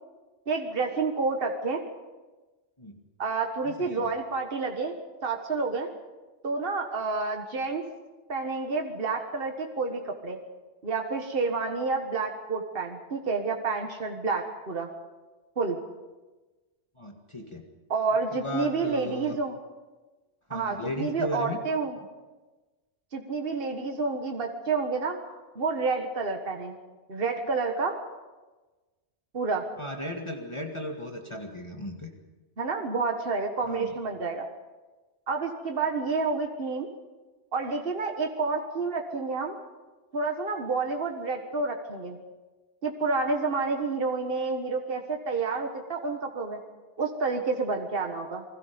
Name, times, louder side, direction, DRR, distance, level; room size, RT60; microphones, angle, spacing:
voice 1, 0.5-1.8 3.2-4.9 5.2-5.9 6.4-7.9 8.3-10.4 10.8-14.9 15.6-15.8 17.9-19.6 20.5-22.0 23.1-26.7 27.1-28.0 29.3-29.7 32.6-34.4 35.3-36.9 37.5-39.6 40.1-42.2 42.8-46.6 47.0-48.4, right 4 dB, 55° right, 3 dB, 1.8 m, -29 dB
voice 2, 3.6-4.1 17.0-17.7 18.3-19.4 20.5-21.6 29.8-32.1 33.6-33.9, left 1 dB, 25° left, 1 dB, 2.1 m, -36 dB
29.0 x 20.5 x 5.3 m, 1.2 s
omnidirectional pair, 1.2 m